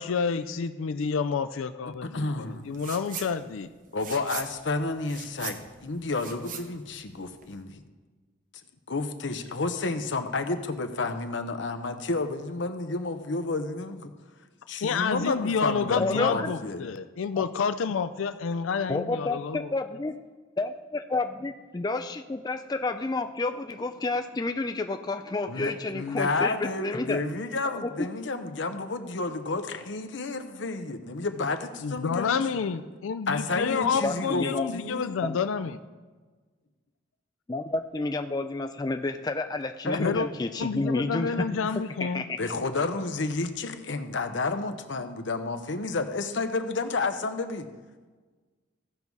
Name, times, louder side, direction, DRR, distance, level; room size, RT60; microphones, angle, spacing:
voice 1, 0.0-3.7 14.8-19.7 31.8-35.8 40.0-40.3 40.6-42.2, left 5 dB, 85° left, 11 dB, 0.4 m, -29 dB
voice 2, 2.0-2.6 3.9-7.8 8.9-14.1 14.7-16.9 25.5-32.4 33.3-35.1 39.8-40.2 42.4-47.7, left 3 dB, 65° left, 8 dB, 0.8 m, -31 dB
sound 1, 2.7-3.3 3.6-7.6, right 6 dB, 40° right, 0.8 m, -40 dB
voice 3, 15.9-16.5 17.4-17.5 18.9-20.2 20.6-27.2 27.7-27.9 34.0-34.7 35.2-35.4 35.7-35.8 37.5-41.6 42.0-42.4, left 2 dB, 20° left, 7 dB, 0.3 m, -30 dB
16.0 x 5.4 x 4.7 m, 1.4 s
head